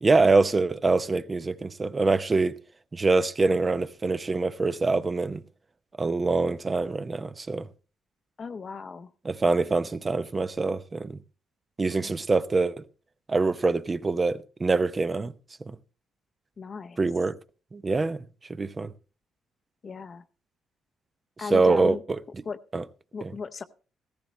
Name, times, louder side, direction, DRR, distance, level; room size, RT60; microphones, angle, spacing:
voice 1, 0.0-2.5 2.9-5.4 6.0-7.7 9.2-11.2 11.8-12.8 13.3-15.3 15.7-15.8 17.0-17.4 17.7-18.2 18.6-18.9 21.5-22.2 22.7-22.8 23.2-23.3, right 3 dB, 30° right, 0.7 m, -24 dB
voice 2, 8.4-9.1 16.6-17.0 19.8-20.2 21.4-22.0 22.4-22.6 23.1-23.6, left 5 dB, 45° left, 0.8 m, -36 dB
15.5 x 14.0 x 3.2 m
cardioid pair, 80°, 0 cm